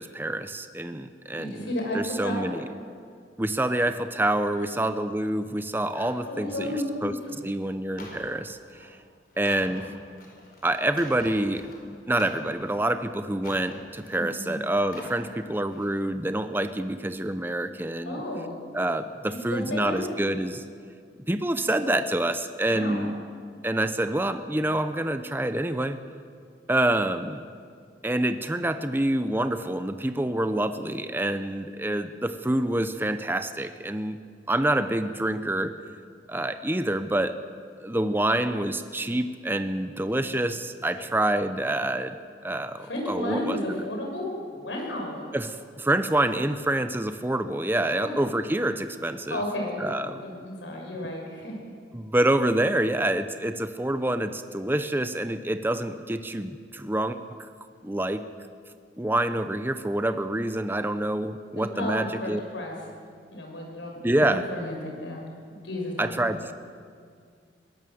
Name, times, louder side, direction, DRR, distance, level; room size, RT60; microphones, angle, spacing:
voice 1, 0.0-1.7 1.9-2.6 3.4-7.1 7.4-9.0 9.4-9.9 10.6-11.7 12.1-18.2 18.7-20.6 21.3-23.1 23.6-26.0 26.7-27.4 28.0-34.2 34.5-35.8 36.3-37.4 37.8-43.6 45.3-49.4 49.8-50.2 51.9-57.5 57.8-58.2 59.0-62.4 64.0-64.5 66.0-66.5, right 1 dB, 10° right, 10 dB, 0.7 m, -27 dB
voice 2, 1.4-2.5 4.6-4.7 5.9-7.2 14.1-14.6 18.0-18.5 19.5-20.1 22.7-23.1 41.0-41.1 42.9-45.2 48.0-48.2 49.3-51.5 61.5-62.7 63.3-64.0 64.3-65.2 65.5-66.4, left 1 dB, 85° left, 0 dB, 6.3 m, -33 dB
sound 1, 8.0-8.3 8.7-8.9 9.3-11.8 12.1-12.9 13.4-14.2 14.7-15.2 15.6-15.9, left 1 dB, 50° left, 5.3 m, -45 dB
22.0 x 18.5 x 7.8 m, 2.2 s
head